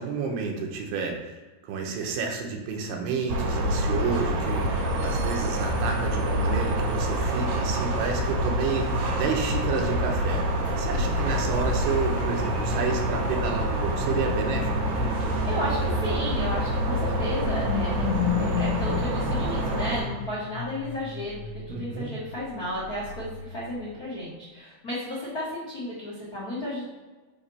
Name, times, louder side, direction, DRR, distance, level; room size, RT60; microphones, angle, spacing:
voice 1, 0.0-10.4 10.8-15.1 21.7-22.1, right 5 dB, 85° right, 2 dB, 2.9 m, -30 dB
sound 1, 3.3-20.0, right 1 dB, 70° right, 3.6 m, -27 dB
sound 2, 5.6-19.0, left 1 dB, 45° left, 1.0 m, -37 dB
sound 3, 10.9-24.1, left 6 dB, 85° left, 2.6 m, -35 dB
voice 2, 10.9-11.3 15.2-21.4 21.7-26.9, left 1 dB, 70° left, -8 dB, 0.8 m, -33 dB
7.0 x 2.9 x 5.5 m, 1.3 s
omnidirectional pair, 4.7 m